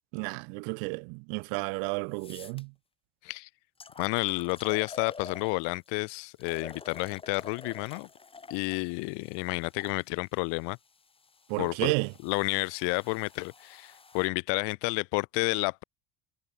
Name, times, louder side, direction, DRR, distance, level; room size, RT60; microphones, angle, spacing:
voice 1, 0.1-2.7 11.5-12.1, right 40 dB or more, 80° right, 0.5 m, -32 dB
sound 1, 1.6-1.7 2.1-2.6 3.3-3.4 3.8-5.9 6.4-10.0 10.8-14.3, left 4 dB, 10° left, 1.1 m, -48 dB
voice 2, 4.0-8.1 8.5-10.8 11.6-11.9 12.2-15.8, left 33 dB, 70° left, 0.9 m, -30 dB
cardioid pair, 150°, 44 cm